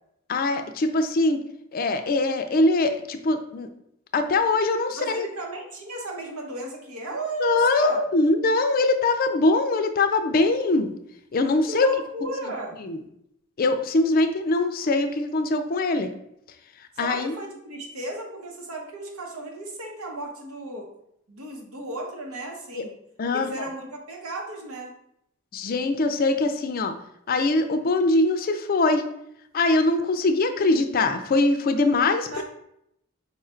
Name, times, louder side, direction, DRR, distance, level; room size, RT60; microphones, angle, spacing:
voice 1, 0.3-1.4 1.7-3.7 4.1-5.3 7.4-10.9 11.3-11.9 12.9-13.0 13.6-16.1 17.0-17.3 22.7-22.9 23.2-23.6 25.5-26.9 27.3-29.0 29.5-32.4, left 2 dB, 45° left, 8 dB, 0.4 m, -22 dB
voice 2, 5.0-8.1 11.6-12.8 16.9-20.9 21.3-22.9 23.3-24.9 32.2-32.4, right 1 dB, 85° right, 1 dB, 1.0 m, -35 dB
4.8 x 2.4 x 4.3 m, 0.76 s
head